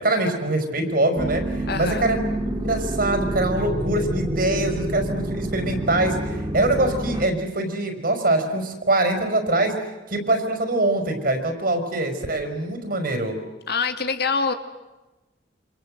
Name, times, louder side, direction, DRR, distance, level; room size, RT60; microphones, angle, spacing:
voice 1, 0.0-1.4 1.7-9.7 10.1-13.4, right 2 dB, 55° right, 6 dB, 5.4 m, -23 dB
sound 1, 1.2-7.3, right 1 dB, 25° right, 1.7 m, -28 dB
voice 2, 1.7-2.1 13.7-14.5, left 5 dB, 65° left, 8 dB, 2.1 m, -25 dB
28.5 x 26.5 x 7.9 m, 1.1 s
head